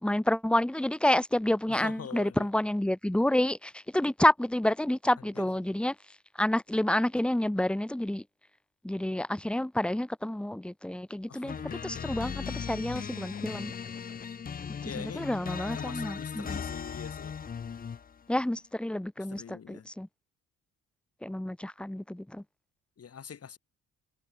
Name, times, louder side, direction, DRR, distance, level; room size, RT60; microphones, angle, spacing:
voice 1, 0.0-5.9 6.4-8.2 8.8-11.6 11.8-13.7 14.8-16.6 18.3-20.1 21.2-22.4, left 1 dB, 5° left, 0.9 m, -29 dB
voice 2, 1.7-2.5 5.2-5.5 11.3-12.3 14.8-15.3 15.7-17.4 19.2-19.9 23.0-23.6, left 7 dB, 45° left, 3.7 m, -44 dB
sound 1, 11.5-18.2, left 6 dB, 30° left, 0.6 m, -38 dB
supercardioid pair, 70°, 32 cm